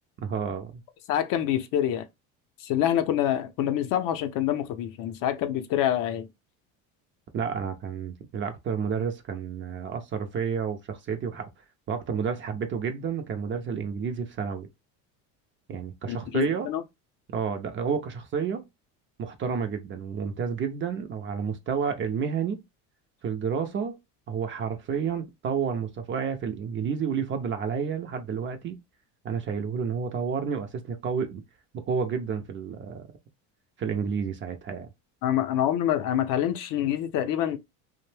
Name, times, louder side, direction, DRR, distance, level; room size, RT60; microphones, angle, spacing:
voice 1, 0.2-0.8 7.3-11.5 11.9-14.7 15.7-16.7 17.3-18.6 19.2-22.6 23.2-24.0 24.3-28.8 29.2-31.4 31.7-33.1 33.8-34.9, right 6 dB, 30° right, 0.4 m, -30 dB
voice 2, 1.1-2.1 2.6-6.3 16.1-16.8 35.2-37.6, left 11 dB, 55° left, 0.5 m, -26 dB
2.6 x 2.1 x 3.2 m
supercardioid pair, 115°, 39 cm